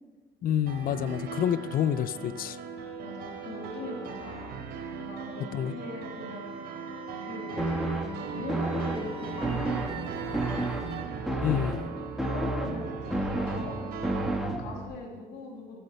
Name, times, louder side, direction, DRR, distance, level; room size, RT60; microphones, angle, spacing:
voice 1, 0.4-2.6 5.5-5.7 11.4-11.8, left 10 dB, 60° left, 16 dB, 0.6 m, -28 dB
sound 1, 0.7-14.4, right 5 dB, 75° right, 3.1 m, -39 dB
voice 2, 3.0-4.6 5.0-6.5 7.2-7.9 8.3-10.7 12.2-13.9 14.2-15.8, left 2 dB, 90° left, 0 dB, 2.8 m, -40 dB
Wind instrument woodwind instrument, 6.0-11.1, right 6 dB, 30° right, 1.3 m, -46 dB
sound 2, 7.6-15.0, right 1 dB, ahead, 1.5 m, -32 dB
15.0 x 12.0 x 5.7 m, 1.4 s
cardioid pair, 110°, 17 cm